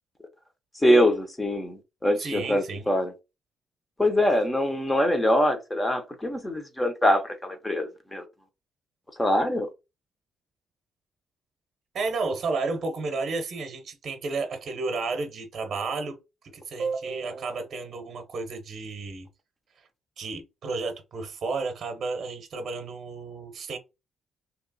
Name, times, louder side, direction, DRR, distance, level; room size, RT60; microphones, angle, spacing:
voice 1, 0.8-3.1 4.0-8.2 9.2-9.7, left 1 dB, 10° left, 0.8 m, -23 dB
voice 2, 2.2-2.9 11.9-16.2 16.5-19.3 20.2-23.8, right 3 dB, 40° right, 0.9 m, -32 dB
3.0 x 2.9 x 4.0 m
cardioid pair, 155°, 0 cm